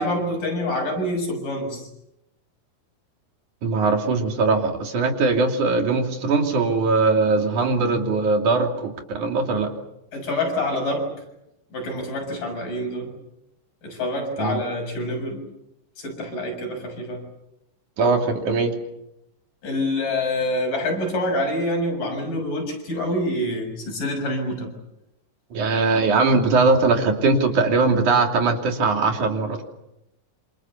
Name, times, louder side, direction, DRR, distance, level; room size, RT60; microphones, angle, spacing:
voice 1, 0.0-1.8 10.1-11.1 11.7-13.1 13.8-15.4 16.0-17.2 19.6-24.7, left 1 dB, 70° left, 2 dB, 8.2 m, -26 dB
voice 2, 3.6-9.7 14.4-14.6 18.0-18.7 25.5-29.6, right 3 dB, 65° right, 4 dB, 4.1 m, -20 dB
27.5 x 27.0 x 7.2 m, 0.87 s
omnidirectional pair, 3.8 m